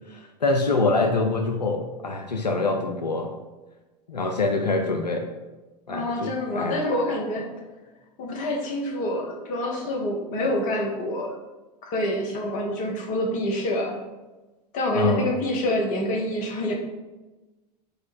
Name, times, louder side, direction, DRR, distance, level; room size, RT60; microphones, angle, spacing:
voice 1, 0.1-3.3 4.1-5.3 5.9-6.8 14.9-15.3, left 3 dB, 90° left, 3 dB, 0.4 m, -25 dB
voice 2, 5.9-7.5 8.2-11.4 11.8-14.0 14.7-16.7, left 1 dB, 40° left, 1 dB, 1.0 m, -27 dB
4.7 x 2.2 x 4.6 m, 1.1 s
figure-of-eight pair, 85°, 21 cm